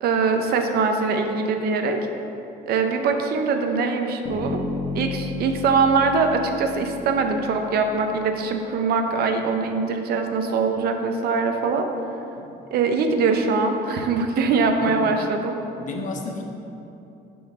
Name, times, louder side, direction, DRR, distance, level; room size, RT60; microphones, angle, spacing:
voice 1, 0.0-2.0 2.7-4.6 4.9-11.9 12.7-15.5, right 4 dB, 65° right, 5 dB, 0.8 m, -22 dB
Bass guitar, 4.3-8.2, left 3 dB, 80° left, 1.6 m, -33 dB
voice 2, 15.8-16.4, left 3 dB, 50° left, 2 dB, 1.1 m, -32 dB
11.0 x 5.1 x 3.7 m, 2.9 s
cardioid pair, 110°, 17 cm